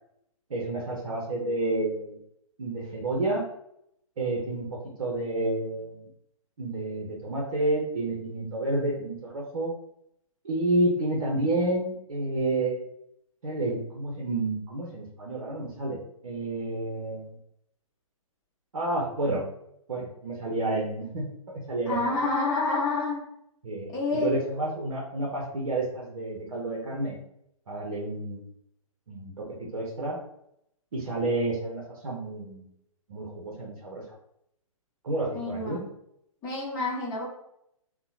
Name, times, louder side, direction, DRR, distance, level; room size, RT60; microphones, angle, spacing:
voice 1, 0.5-2.2 2.6-3.4 4.2-6.1 6.6-9.7 10.4-12.8 13.4-17.4 18.7-19.4 19.9-22.2 23.6-27.2 27.7-28.5 29.1-30.2 30.9-32.7 33.1-34.0 35.0-35.8, right 2 dB, 60° right, -3 dB, 0.7 m, -30 dB
voice 2, 21.9-23.2 23.9-24.4 35.3-35.8 36.4-37.2, left 3 dB, 15° left, -6 dB, 0.9 m, -28 dB
2.7 x 2.1 x 2.5 m, 0.75 s
figure-of-eight pair, 125°, 18 cm